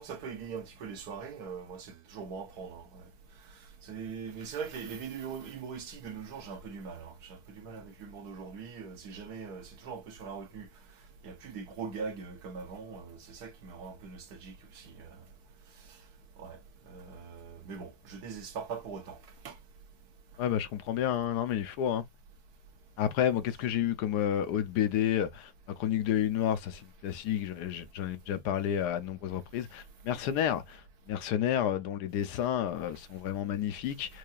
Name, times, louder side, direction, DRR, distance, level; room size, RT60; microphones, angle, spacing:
voice 1, 0.0-3.1 3.8-10.7 11.2-15.2 16.4-16.6 16.8-19.2 19.4-19.6, right 5 dB, 65° right, 1.4 m, -41 dB
voice 2, 20.4-22.0 23.0-30.8 31.1-34.2, left 10 dB, 75° left, 1.2 m, -30 dB
4.7 x 2.6 x 2.3 m
omnidirectional pair, 1.8 m